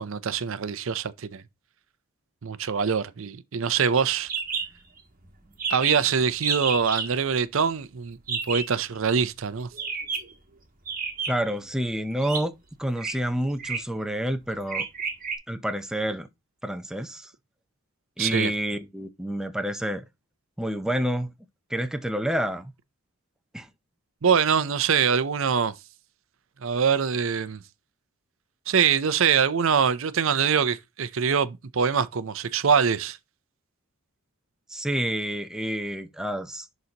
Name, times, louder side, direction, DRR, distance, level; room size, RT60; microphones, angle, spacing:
voice 1, 0.0-1.4 2.4-4.3 5.7-9.7 18.2-18.5 24.2-25.8 26.6-27.6 28.7-33.2, right 6 dB, 60° right, 0.5 m, -24 dB
sound 1, 4.3-4.7 5.0-5.1 5.3-5.4 5.6-6.1 6.4-7.1 8.3-8.7 9.7-10.3 10.9-11.5 12.2-12.4 12.9-13.1 13.6-13.9 14.7-15.4, right 5 dB, 40° right, 1.8 m, -30 dB
voice 2, 11.3-12.5 12.8-14.9 15.5-16.3 16.6-17.3 18.2-20.0 20.6-21.3 21.7-22.7 23.5-23.7 34.7-36.7, equal, 5° right, 0.6 m, -28 dB
11.0 x 4.0 x 2.9 m
head